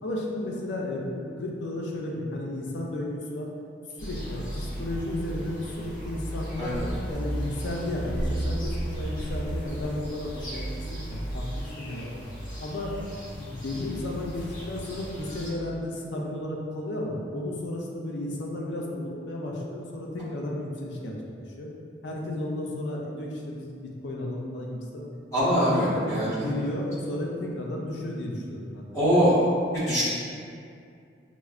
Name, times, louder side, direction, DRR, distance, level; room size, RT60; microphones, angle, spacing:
voice 1, 0.0-3.5 3.9-6.8 7.1-12.2 12.6-12.9 13.4-21.1 21.5-21.7 22.0-25.0 25.7-29.3, left 1 dB, 70° left, -2 dB, 0.5 m, -33 dB
sound 1, 4.0-15.5, equal, 45° left, 0.8 m, -34 dB
voice 2, 25.3-26.3 28.9-29.4 29.7-30.0, equal, 15° left, -13 dB, 1.2 m, -22 dB
4.3 x 2.1 x 2.4 m, 2.4 s
head